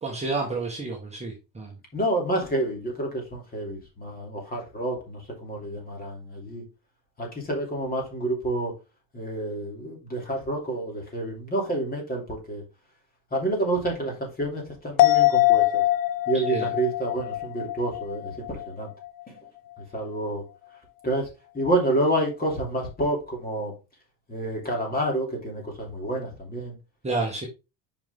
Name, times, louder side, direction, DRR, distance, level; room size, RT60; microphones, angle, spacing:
voice 1, 0.0-1.7 16.5-16.7 27.0-27.4, right 3 dB, 15° right, 1.5 m, -30 dB
voice 2, 1.9-6.6 7.2-8.7 9.1-12.6 13.3-15.8 16.3-18.9 19.3-19.4 19.9-20.4 21.0-21.3 21.5-23.7 24.3-26.8, right 1 dB, 20° left, 3.0 m, -28 dB
sound 1, 15.0-18.7 19.0-19.1, left 16 dB, 55° left, 0.7 m, -23 dB
7.0 x 5.4 x 3.7 m
cardioid pair, 140°, 44 cm